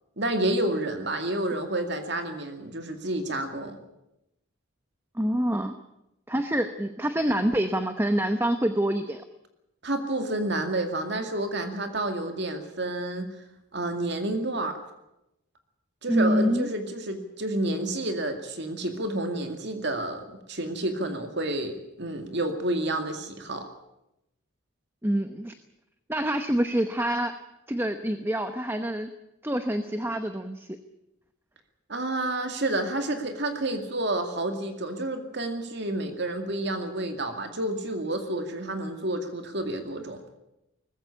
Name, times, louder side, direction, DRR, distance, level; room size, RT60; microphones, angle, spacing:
voice 1, 0.2-3.8 9.8-13.3 13.7-14.8 16.0-23.7 31.9-40.2, right 1 dB, 55° right, 6 dB, 2.2 m, -30 dB
voice 2, 5.1-5.8 6.3-9.2 16.1-16.7 25.0-25.5 26.1-27.3 27.7-29.1 29.4-30.8, equal, 10° right, 8 dB, 0.9 m, -26 dB
20.0 x 15.5 x 10.0 m, 0.88 s
head